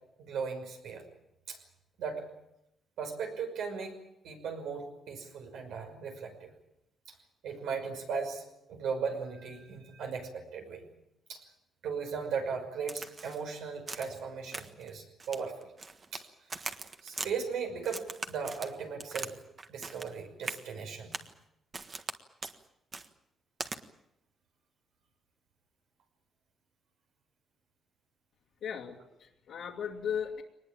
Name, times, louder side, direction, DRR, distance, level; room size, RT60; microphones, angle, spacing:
voice 1, 0.2-1.0 1.5-1.6 2.0-2.2 3.0-4.0 4.2-6.5 7.4-10.9 11.3-11.4 11.8-15.7 16.1-16.2 17.0-19.3 19.7-21.1, right 5 dB, 85° right, 4 dB, 5.9 m, -37 dB
Crack, 12.9-13.4 13.9-14.2 14.5-14.9 15.2-16.2 16.5-17.3 17.8-19.3 19.6-20.1 20.4-20.6 21.1-21.3 21.7-22.2 22.4-22.6 22.9-23.1 23.6-23.8, right 4 dB, 35° right, 1.6 m, -40 dB
voice 2, 28.6-30.4, left 8 dB, 75° left, -3 dB, 2.3 m, -37 dB
23.0 x 20.0 x 8.9 m, 0.83 s
cardioid pair, 120°, 0 cm